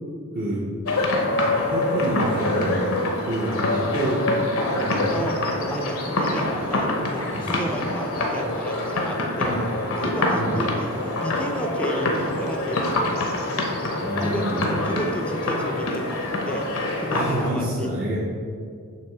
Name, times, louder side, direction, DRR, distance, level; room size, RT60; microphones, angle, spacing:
voice 1, 0.3-0.8 1.6-2.9 3.2-4.4 4.7-5.3 7.3-7.5 9.4-9.7 10.4-10.6 14.0-14.8 17.1-18.2, right 1 dB, 40° right, -5 dB, 0.8 m, -27 dB
sound 1, 0.9-17.5, left 2 dB, 70° left, 0.9 m, -25 dB
voice 2, 5.7-9.6 10.0-13.3 14.2-17.9, equal, 5° left, 3 dB, 0.5 m, -32 dB
6.8 x 3.6 x 6.0 m, 2.2 s
head